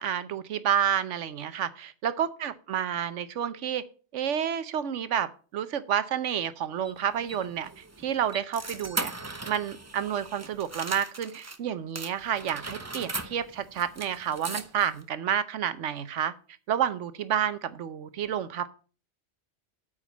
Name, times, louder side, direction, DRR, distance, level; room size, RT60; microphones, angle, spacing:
voice 1, 0.0-3.8 4.1-9.1 9.5-16.3 16.7-18.7, right 9 dB, 80° right, 14 dB, 1.1 m, -30 dB
sound 1, 6.8-11.6 12.0-15.0, right 3 dB, 20° right, 0.5 m, -39 dB
8.5 x 5.1 x 7.4 m, 0.38 s
omnidirectional pair, 1.2 m